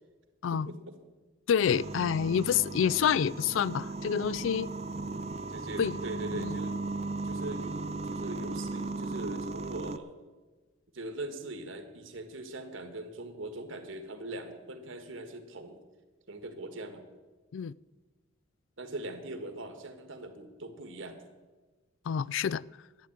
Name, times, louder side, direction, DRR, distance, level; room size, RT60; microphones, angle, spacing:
voice 1, 0.5-0.9 5.1-5.2 5.5-6.8 7.2-10.2 10.9-15.8 16.3-17.0 18.8-21.2, right 2 dB, 70° right, 1.6 m, -41 dB
voice 2, 1.5-4.7 5.8-6.0 6.4-6.6 17.5-17.7 22.1-22.6, left 8 dB, 70° left, 0.3 m, -28 dB
sound 1, 1.6-10.0, right 3 dB, 35° right, 0.6 m, -36 dB
11.5 x 9.0 x 8.7 m
head